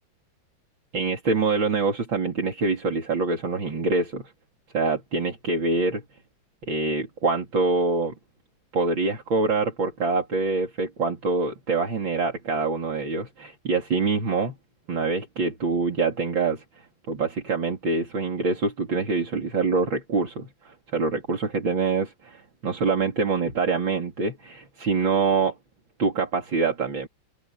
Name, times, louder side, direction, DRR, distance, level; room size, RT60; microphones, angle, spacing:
voice 1, 0.9-4.3 4.7-6.0 6.7-8.1 8.7-14.6 14.9-16.6 17.1-25.6 26.0-27.1, right 4 dB, 70° right, 4.2 m, -25 dB
omnidirectional pair, 2.2 m